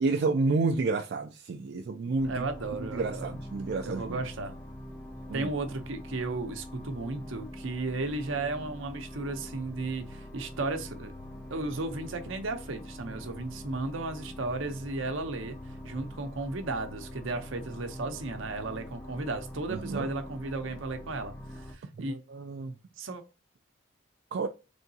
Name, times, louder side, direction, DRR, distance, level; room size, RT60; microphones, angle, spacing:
voice 1, 0.0-2.4 2.8-4.3 5.3-5.5 19.7-20.1 22.1-22.7 24.3-24.5, right 3 dB, 50° right, 0.3 m, -30 dB
voice 2, 2.0-3.3 3.8-4.5 5.3-11.1 11.5-15.6 15.8-21.3 21.7-22.2 23.0-23.2, right 3 dB, 70° right, 0.7 m, -34 dB
sound 1, 2.2-21.7, left 1 dB, 10° left, 0.5 m, -44 dB
3.8 x 3.4 x 2.7 m
head